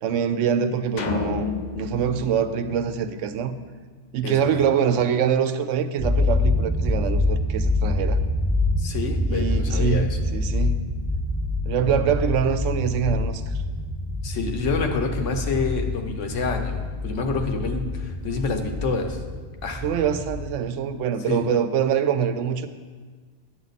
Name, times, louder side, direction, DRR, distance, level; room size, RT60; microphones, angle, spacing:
voice 1, 0.0-1.5 1.8-3.5 4.1-8.2 9.3-10.0 10.3-10.8 11.6-13.4 19.8-22.7, right 8 dB, 85° right, 10 dB, 0.9 m, -24 dB
sound 1, 1.0-3.4, left 5 dB, 50° left, 0.6 m, -31 dB
voice 2, 4.2-4.7 8.8-10.2 14.2-19.2 19.6-19.8 21.3-21.4, left 4 dB, 80° left, 5 dB, 1.2 m, -27 dB
sound 2, 6.0-20.5, left 2 dB, ahead, 0.8 m, -26 dB
9.7 x 7.4 x 4.1 m, 1.5 s
omnidirectional pair, 1.2 m